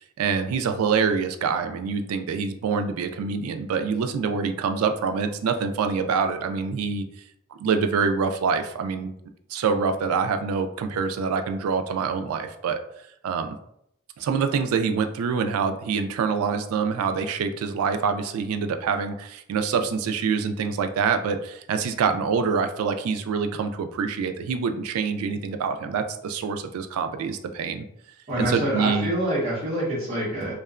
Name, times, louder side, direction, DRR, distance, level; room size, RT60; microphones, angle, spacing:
voice 1, 0.0-7.1 7.6-9.1 9.5-12.8 13.2-13.6 14.2-27.8 28.4-29.1, right 5 dB, 85° right, 9 dB, 0.3 m, -25 dB
voice 2, 28.3-30.5, right 1 dB, 30° right, -8 dB, 0.9 m, -26 dB
2.8 x 2.1 x 2.4 m, 0.73 s
head